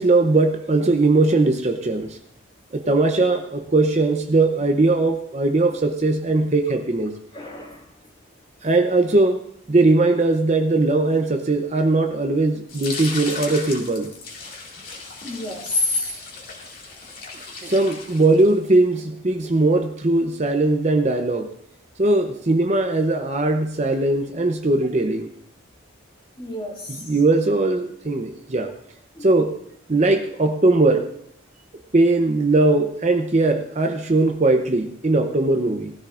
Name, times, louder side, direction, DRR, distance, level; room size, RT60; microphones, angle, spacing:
voice 1, 0.0-2.2 2.7-7.2 8.6-14.1 17.6-21.5 22.0-25.3 26.9-28.7 29.2-29.5 29.9-31.1 31.9-35.9, right 2 dB, 35° right, 5 dB, 0.7 m, -19 dB
voice 2, 7.3-7.9 15.2-16.2 26.4-27.1 29.2-29.3, left 2 dB, 25° left, -1 dB, 2.2 m, -28 dB
sound 1, 12.7-18.7, left 4 dB, 45° left, 2.2 m, -36 dB
18.5 x 13.5 x 2.5 m, 0.71 s
head